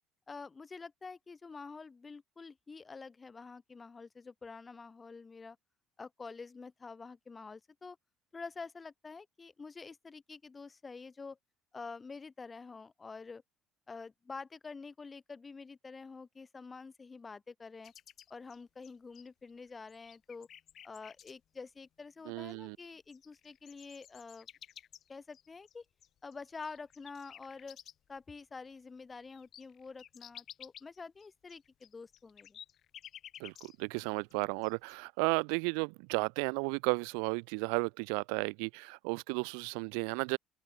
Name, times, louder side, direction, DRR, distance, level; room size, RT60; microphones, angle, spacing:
voice 1, 0.3-5.6 6.0-8.0 8.3-11.4 11.7-13.4 13.9-17.9 18.3-20.5 20.8-24.5 25.1-25.8 26.2-27.8 28.1-32.6, left 4 dB, 25° left, 1.7 m, -47 dB
sound 1, 17.8-19.5 19.9-21.3 22.5-22.6 22.8-28.2 28.6-28.7 29.0-34.0 34.3-35.0, left 10 dB, 50° left, 3.7 m, -53 dB
voice 2, 22.3-22.8 33.4-40.4, right 40 dB or more, 75° right, 0.4 m, -34 dB
open air
hypercardioid pair, 65°, 0 cm